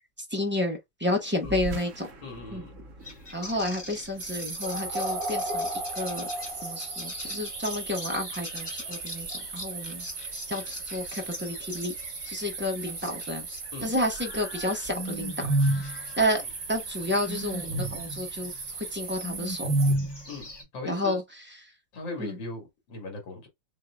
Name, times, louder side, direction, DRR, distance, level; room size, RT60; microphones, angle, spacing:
voice 1, 0.3-2.1 2.5-2.6 3.3-5.7 6.0-6.3 6.6-9.3 9.5-10.0 10.5-11.9 12.3-13.5 13.8-16.4 16.7-18.5 18.8-19.8 20.8-21.2 22.2-22.4, left 1 dB, 15° right, 0.4 m, -30 dB
sound 1, 1.4-6.3, right 1 dB, 50° right, 1.2 m, -43 dB
voice 2, 2.2-2.7 13.7-13.9 20.3-21.2 21.9-23.5, left 2 dB, 80° left, 2.4 m, -38 dB
sound 2, 3.0-13.7 14.0-20.6, right 1 dB, 15° left, 1.0 m, -34 dB
sound 3, 4.2-20.0, right 3 dB, 75° right, 2.4 m, -37 dB
6.4 x 2.7 x 2.2 m
omnidirectional pair, 2.0 m